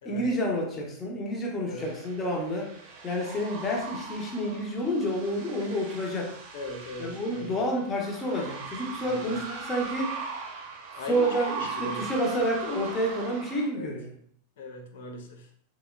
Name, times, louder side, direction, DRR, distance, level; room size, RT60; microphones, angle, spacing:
voice 1, 0.0-2.7 3.0-6.3 7.0-10.2 11.0-14.1, equal, 20° left, 0 dB, 0.8 m, -29 dB
sound 1, 1.8-13.7, right 5 dB, 40° right, 0.7 m, -40 dB
voice 2, 6.5-7.5 9.0-9.2 11.0-11.3 11.6-12.0 13.7-14.0 14.6-15.5, left 2 dB, 55° left, 4 dB, 0.6 m, -39 dB
3.5 x 3.0 x 2.4 m, 0.63 s
figure-of-eight pair, 90°, 0 cm